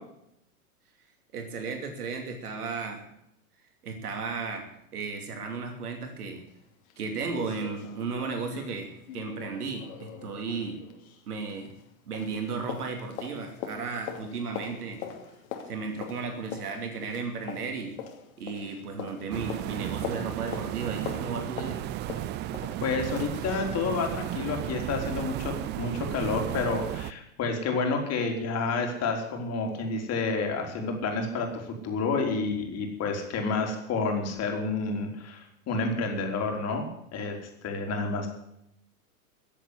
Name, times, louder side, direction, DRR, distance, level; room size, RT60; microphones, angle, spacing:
voice 1, 1.3-3.0 3.8-4.7 4.9-6.4 7.0-10.8 11.3-11.7 12.1-15.0 15.7-18.0 18.4-21.9, right 4 dB, 80° right, 4 dB, 2.9 m, -34 dB
sound 1, 6.5-6.6 6.9-7.0 7.3-11.9 12.1-23.7 24.1-24.2, left 8 dB, 65° left, 3.0 m, -42 dB
sound 2, 19.3-27.1, right 14 dB, 25° right, 0.5 m, -34 dB
voice 2, 22.8-37.4 37.6-38.3, left 4 dB, 35° left, 3 dB, 3.9 m, -29 dB
15.0 x 7.9 x 9.9 m, 0.77 s
hypercardioid pair, 110°, 45 cm